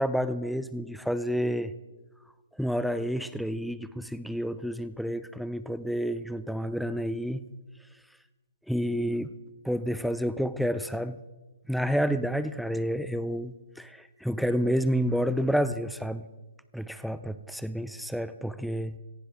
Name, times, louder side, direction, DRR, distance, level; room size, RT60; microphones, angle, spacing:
voice 1, 0.0-1.7 2.6-7.4 8.7-9.3 9.6-11.2 11.7-16.3 16.7-19.0, equal, ahead, 13 dB, 0.6 m, -29 dB
18.0 x 15.0 x 3.6 m, 1.2 s
hypercardioid pair, 135°, 0 cm